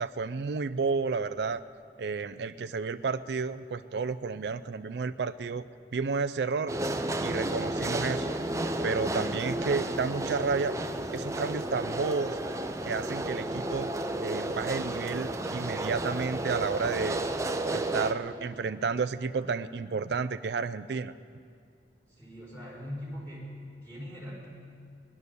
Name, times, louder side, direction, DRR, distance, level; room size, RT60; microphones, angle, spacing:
voice 1, 0.0-1.6 2.0-5.7 5.9-6.7 7.2-8.4 8.8-10.8 11.1-12.4 12.8-13.9 14.2-17.2 17.7-21.1, right 4 dB, 65° right, 12 dB, 0.4 m, -31 dB
sound 1, 6.7-18.1, right 1 dB, 15° right, 0.6 m, -32 dB
voice 2, 22.1-23.5 23.8-24.5, equal, 10° left, -6 dB, 4.5 m, -41 dB
18.5 x 11.0 x 6.7 m, 2.3 s
head